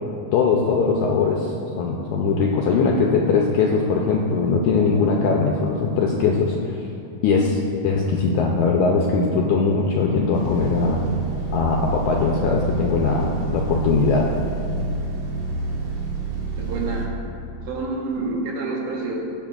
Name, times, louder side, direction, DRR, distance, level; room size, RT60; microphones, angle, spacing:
voice 1, 0.3-6.8 7.2-11.0 11.5-14.3, left 4 dB, 80° left, -1 dB, 1.7 m, -20 dB
sound 1, 10.3-17.1, right 2 dB, 65° right, 2.2 m, -27 dB
voice 2, 16.6-17.1 17.7-19.2, right 3 dB, 80° right, -2 dB, 3.1 m, -28 dB
17.5 x 7.4 x 2.5 m, 2.8 s
omnidirectional pair, 4.1 m